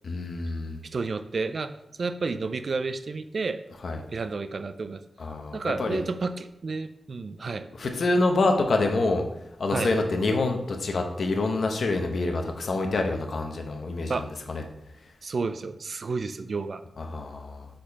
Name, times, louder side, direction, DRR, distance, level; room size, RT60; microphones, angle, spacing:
voice 1, 0.0-0.8 3.8-4.0 5.2-6.1 7.7-9.2 9.6-14.6 17.0-17.7, left 2 dB, 65° left, 3 dB, 0.9 m, -26 dB
voice 2, 0.9-1.7 2.0-3.6 4.1-5.0 5.5-7.7 9.7-9.9 14.1-14.3 15.2-16.8, right 4 dB, 55° right, 11 dB, 0.3 m, -31 dB
5.1 x 4.3 x 5.7 m, 0.85 s
wide cardioid pair, 105°, 0 cm